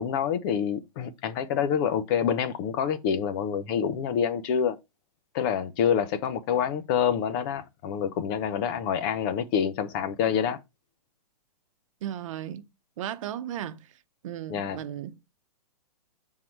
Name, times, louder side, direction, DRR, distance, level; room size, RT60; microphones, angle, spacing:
voice 1, 0.0-4.8 5.3-10.6 14.5-14.8, left 8 dB, 35° left, 0.8 m, -27 dB
voice 2, 12.0-12.6 13.0-13.8 14.2-15.4, right 11 dB, 55° right, 0.9 m, -35 dB
7.6 x 3.7 x 4.5 m
hypercardioid pair, 150°, 20 cm